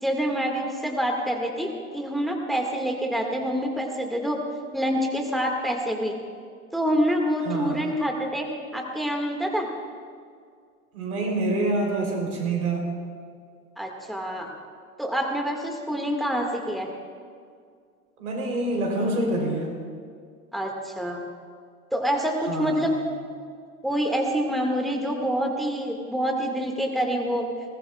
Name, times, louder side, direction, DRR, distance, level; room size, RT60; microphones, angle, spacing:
voice 1, 0.0-4.4 4.7-6.1 6.7-8.5 8.7-9.7 13.8-14.5 15.0-16.9 20.5-21.2 21.9-22.9 23.8-27.5, equal, ahead, 1 dB, 1.9 m, -26 dB
voice 2, 7.5-7.8 10.9-12.9 18.2-19.7 22.5-23.0, right 2 dB, 75° right, 1 dB, 3.8 m, -26 dB
21.0 x 19.0 x 2.4 m, 2.1 s
figure-of-eight pair, 75°, 44 cm